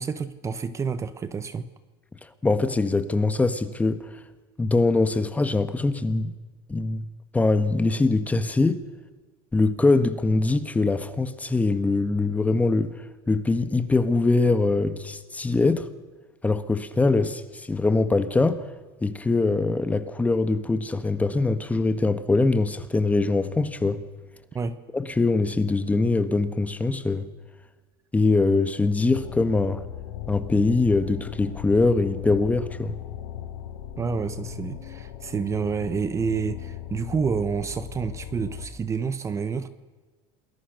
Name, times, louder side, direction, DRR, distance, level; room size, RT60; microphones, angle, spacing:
voice 1, 0.0-1.7 24.5-24.8 34.0-39.7, right 5 dB, 25° right, 1.3 m, -28 dB
voice 2, 2.4-4.1 4.6-6.3 6.7-7.0 7.3-8.8 9.5-12.9 13.3-15.9 16.4-18.6 19.0-24.0 24.9-27.3 28.1-29.8 30.3-32.9, left 3 dB, 10° left, 1.5 m, -23 dB
sound 1, 29.1-38.7, left 11 dB, 90° left, 4.3 m, -38 dB
28.0 x 21.0 x 6.7 m
supercardioid pair, 125°, 13 cm